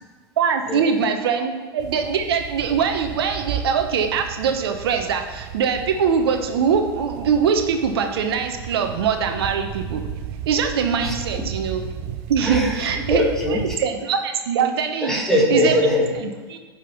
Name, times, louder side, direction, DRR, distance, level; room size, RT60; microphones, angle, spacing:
voice 1, 0.4-10.0 10.5-11.8 12.3-13.3 13.8-15.2 15.5-15.7 16.2-16.6, right 6 dB, 65° right, 5 dB, 1.1 m, -22 dB
sound 1, 1.8-13.8, right 8 dB, 50° right, 0.7 m, -34 dB
voice 2, 11.0-11.5 12.4-13.8 15.0-16.2, left 1 dB, 5° left, -1 dB, 1.7 m, -22 dB
9.3 x 5.5 x 6.0 m, 1.4 s
hypercardioid pair, 95°, 14 cm